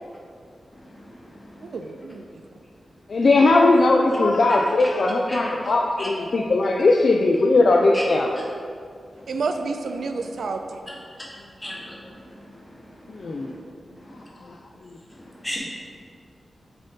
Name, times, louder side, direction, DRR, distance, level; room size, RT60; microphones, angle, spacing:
voice 1, 1.6-2.2 9.3-10.8, right 4 dB, 80° right, 6 dB, 0.3 m, -29 dB
voice 2, 3.1-8.3 13.1-13.5, left 2 dB, 50° left, 1 dB, 0.3 m, -19 dB
voice 3, 11.6-12.0 15.4-15.6, left 1 dB, 15° left, -4 dB, 1.0 m, -31 dB
7.6 x 4.1 x 3.5 m, 2.3 s
wide cardioid pair, 180°, 0 cm